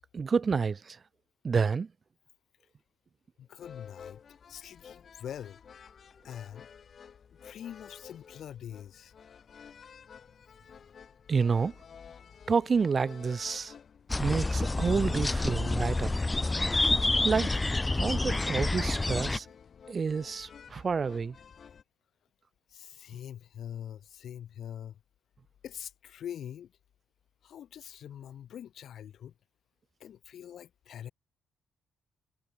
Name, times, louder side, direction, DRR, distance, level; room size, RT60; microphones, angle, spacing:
voice 1, 0.1-1.0 1.4-1.9 11.3-11.8 12.5-13.7 14.2-16.2 17.2-17.6 17.9-19.5 19.9-21.4, right 5 dB, 40° right, 0.7 m, -29 dB
voice 2, 3.4-4.2 4.5-5.6 6.2-6.7 7.3-9.1 22.7-25.0 25.6-26.7 27.4-29.3 30.0-31.1, left 10 dB, 65° left, 2.5 m, -43 dB
sound 1, 3.6-21.8, left 7 dB, 50° left, 6.2 m, -52 dB
sound 2, 14.1-19.4, left 2 dB, 20° left, 1.5 m, -28 dB
cardioid pair, 90°, 0 cm